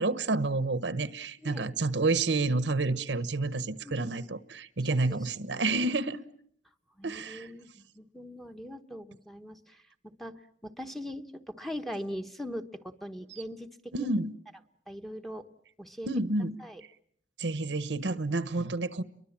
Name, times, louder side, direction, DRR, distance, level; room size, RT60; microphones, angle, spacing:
voice 1, 0.0-6.2 7.0-7.5 13.3-13.4 13.9-14.3 16.1-16.6 17.4-19.0, right 3 dB, 75° right, 1.1 m, -29 dB
voice 2, 3.8-4.3 5.0-5.2 5.4-5.8 7.0-14.1 14.9-15.5 15.8-16.1 16.6-16.8, equal, ahead, 1.1 m, -41 dB
30.0 x 23.5 x 7.3 m
head